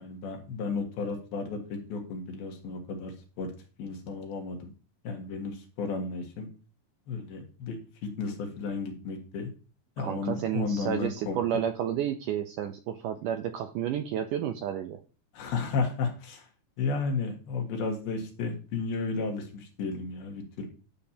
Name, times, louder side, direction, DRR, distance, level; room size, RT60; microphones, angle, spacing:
voice 1, 0.0-3.5 3.8-4.7 5.0-6.5 7.1-7.8 8.0-9.5 10.0-11.4 15.3-16.5 16.8-20.7, left 4 dB, 80° left, 3 dB, 3.4 m, -33 dB
voice 2, 10.0-15.0, right 10 dB, 80° right, 7 dB, 1.9 m, -31 dB
11.5 x 6.8 x 2.8 m, 0.35 s
omnidirectional pair, 4.3 m